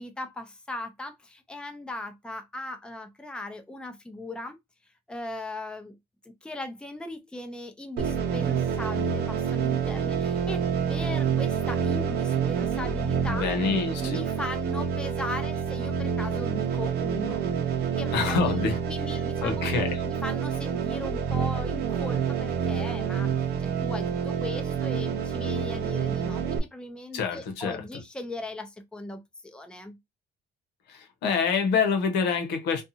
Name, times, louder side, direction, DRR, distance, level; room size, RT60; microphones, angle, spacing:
voice 1, 0.0-4.6 5.1-6.0 6.4-13.4 14.0-17.5 18.0-18.6 18.9-19.6 20.0-23.3 23.6-30.0, left 2 dB, 5° left, 0.6 m, -38 dB
sound 1, 8.0-26.6, right 7 dB, 65° right, 0.7 m, -28 dB
voice 2, 13.3-14.2 18.1-18.8 19.4-20.0 27.1-28.0 30.9-32.8, left 5 dB, 85° left, 0.9 m, -27 dB
2.6 x 2.4 x 2.7 m
cardioid pair, 110°, 17 cm